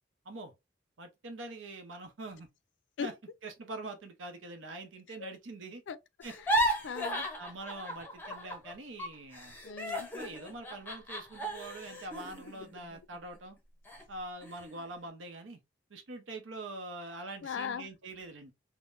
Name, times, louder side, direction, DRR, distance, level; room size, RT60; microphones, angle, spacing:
voice 1, 1.0-2.5 3.0-3.1 3.4-5.8 6.2-6.3 7.3-9.6 10.1-13.6 14.1-15.6 15.9-18.5, right 2 dB, 90° right, 0.7 m, -44 dB
sound 1, 6.2-8.7 9.0-13.4 13.9-14.0 14.4-14.9, right 1 dB, 10° left, 0.6 m, -35 dB
voice 2, 6.5-7.3 9.6-10.1 17.4-17.9, left 6 dB, 70° left, 0.4 m, -39 dB
3.7 x 2.1 x 2.5 m
head